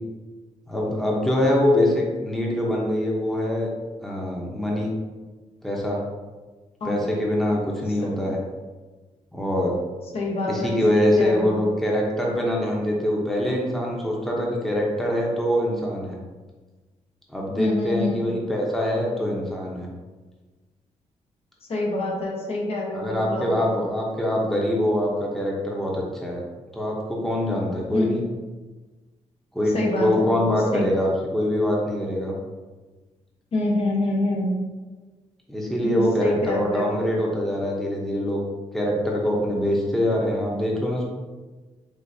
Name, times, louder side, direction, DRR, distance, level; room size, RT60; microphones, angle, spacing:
voice 1, 0.7-3.7 4.0-4.9 5.6-6.0 6.8-8.4 9.3-9.8 10.5-16.2 17.3-19.9 22.9-26.4 26.7-28.2 29.5-29.7 30.0-32.3 35.5-38.4 38.7-41.0, left 1 dB, ahead, -3 dB, 0.8 m, -24 dB
voice 2, 10.1-11.6 17.6-18.3 21.7-23.8 27.9-28.2 29.7-30.4 30.7-30.9 33.5-34.6 35.8-37.0, left 2 dB, 55° left, -1 dB, 0.9 m, -26 dB
6.5 x 2.5 x 2.7 m, 1.3 s
cardioid pair, 115°, 12 cm